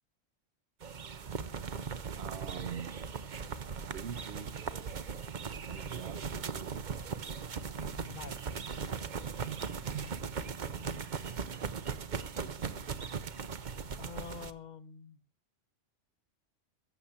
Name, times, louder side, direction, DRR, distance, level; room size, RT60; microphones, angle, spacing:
sound 1, 0.8-14.5, right 6 dB, 45° right, 0.8 m, -39 dB
voice 1, 2.2-3.0 3.9-4.9 5.7-6.9 9.4-11.1 11.4-11.6 12.3-12.8, right 8 dB, 65° right, 1.1 m, -45 dB
voice 2, 7.9-8.4 10.8-10.9 14.0-15.2, left 6 dB, 45° left, 0.8 m, -47 dB
15.0 x 7.3 x 7.2 m
omnidirectional pair, 1.2 m